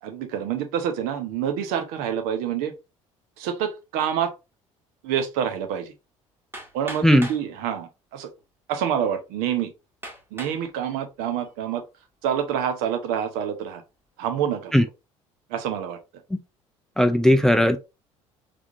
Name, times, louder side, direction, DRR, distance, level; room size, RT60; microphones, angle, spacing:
voice 1, 0.0-2.7 3.4-4.3 5.0-5.9 6.7-8.3 8.7-9.7 10.3-11.8 12.2-13.8 14.2-14.7 15.5-16.0, right 9 dB, 60° right, 0.8 m, -27 dB
Hammer, 6.5-7.5 8.4-8.5 9.1-9.2 10.0-10.6 11.2-11.6, right 1 dB, 15° right, 1.3 m, -39 dB
voice 2, 17.0-17.8, equal, 5° left, 0.4 m, -17 dB
3.5 x 3.4 x 2.4 m
figure-of-eight pair, 60°, 17 cm